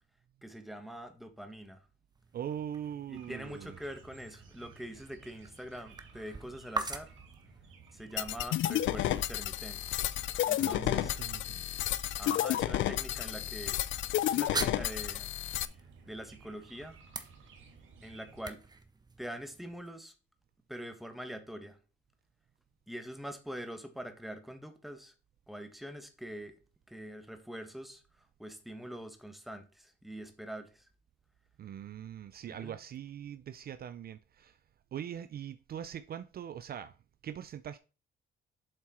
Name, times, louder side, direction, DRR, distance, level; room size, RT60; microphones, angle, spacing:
voice 1, 0.4-1.9 3.1-7.1 7.9-10.0 10.5-11.2 12.2-13.8 14.2-15.3 16.1-17.0 18.0-18.6 19.2-20.1 20.7-21.8 22.9-25.1 25.5-26.5 26.9-30.9 32.5-32.8, equal, ahead, 1.4 m, -44 dB
sound 1, 2.1-19.9, right 3 dB, 20° right, 0.9 m, -46 dB
voice 2, 2.3-3.7 10.6-11.6 31.6-34.6 34.9-36.9 37.2-37.8, right 9 dB, 50° right, 0.5 m, -42 dB
sound 2, 3.1-18.4, right 5 dB, 80° right, 1.8 m, -57 dB
sound 3, 8.2-15.7, left 13 dB, 75° left, 0.5 m, -31 dB
7.4 x 4.5 x 4.3 m
cardioid pair, 90°, 20 cm